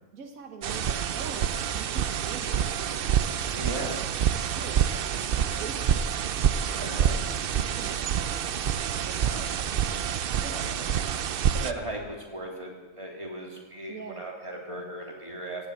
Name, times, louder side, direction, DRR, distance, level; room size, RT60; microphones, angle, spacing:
voice 1, 0.1-4.0 4.4-5.1 5.6-10.5 13.9-14.2, right 6 dB, 75° right, 4 dB, 1.5 m, -45 dB
sound 1, 0.6-11.7, right 8 dB, 60° right, 0.6 m, -27 dB
voice 2, 3.5-4.0 6.7-7.2 9.2-9.5 10.5-10.9 11.6-12.7 13.0-15.7, right 1 dB, 20° right, -1 dB, 2.9 m, -37 dB
16.5 x 8.4 x 8.2 m, 1.3 s
omnidirectional pair, 1.5 m